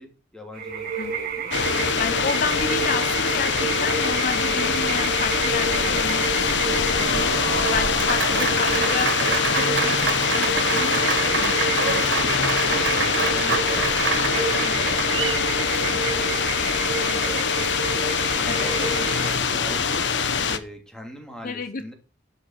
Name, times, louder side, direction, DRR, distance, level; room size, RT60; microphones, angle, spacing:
voice 1, 0.0-1.5 8.2-8.5 12.5-20.1 20.5-21.9, equal, 5° left, 2 dB, 3.1 m, -42 dB
sound 1, 0.5-19.3, right 4 dB, 50° right, 2.9 m, -30 dB
sound 2, 1.5-20.6, left 5 dB, 75° left, 1.2 m, -23 dB
voice 2, 2.0-7.4 7.7-9.1 9.5-12.3 18.5-18.7 21.4-21.9, left 4 dB, 45° left, 10 dB, 0.7 m, -31 dB
Applause, 6.7-15.4, right 5 dB, 75° right, 2.2 m, -27 dB
11.5 x 7.5 x 5.8 m, 0.35 s
head